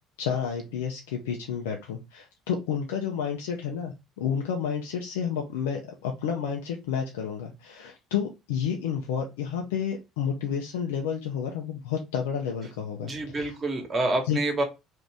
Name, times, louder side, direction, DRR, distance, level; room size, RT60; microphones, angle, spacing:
voice 1, 0.2-13.1 13.4-13.6 14.3-14.4, left 7 dB, 85° left, 1 dB, 0.4 m, -30 dB
voice 2, 13.0-14.6, right 2 dB, 40° right, 4 dB, 1.2 m, -27 dB
2.6 x 2.5 x 3.3 m, 0.25 s
hypercardioid pair, 70°, 0 cm